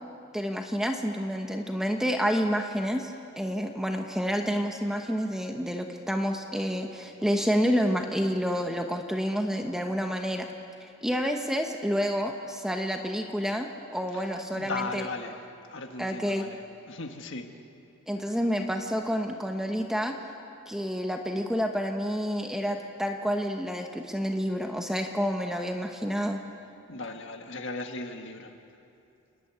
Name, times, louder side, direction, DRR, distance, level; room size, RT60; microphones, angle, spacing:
voice 1, 0.3-10.5 11.0-15.1 16.0-16.5 18.1-20.2 20.7-26.4, equal, ahead, 3 dB, 1.0 m, -29 dB
voice 2, 14.5-15.4 15.7-16.6 16.9-17.5 26.9-28.5, left 3 dB, 55° left, 5 dB, 1.6 m, -37 dB
29.0 x 12.0 x 9.3 m, 2.7 s
head